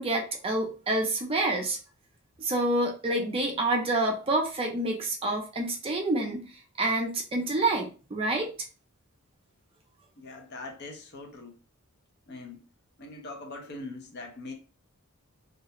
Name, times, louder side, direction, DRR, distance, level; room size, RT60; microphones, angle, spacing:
voice 1, 0.0-1.8 2.4-6.4 6.8-8.5, right 2 dB, 25° right, 0.4 m, -28 dB
voice 2, 10.2-11.5 12.3-12.6 13.0-14.5, left 2 dB, 50° left, 0.6 m, -42 dB
2.3 x 2.0 x 2.8 m
head